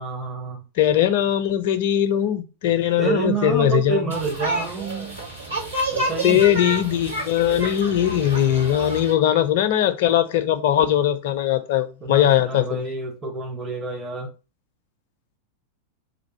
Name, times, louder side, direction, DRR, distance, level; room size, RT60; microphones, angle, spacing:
voice 1, 0.0-0.6 3.0-5.2 5.9-6.4 12.0-14.3, right 4 dB, 20° right, 1.0 m, -28 dB
voice 2, 0.8-4.1 6.2-12.8, left 11 dB, 50° left, 0.5 m, -20 dB
Children playing in a park, 4.1-9.1, right 1 dB, 80° right, 1.7 m, -29 dB
3.4 x 2.5 x 4.2 m
figure-of-eight pair, 90°, 0 cm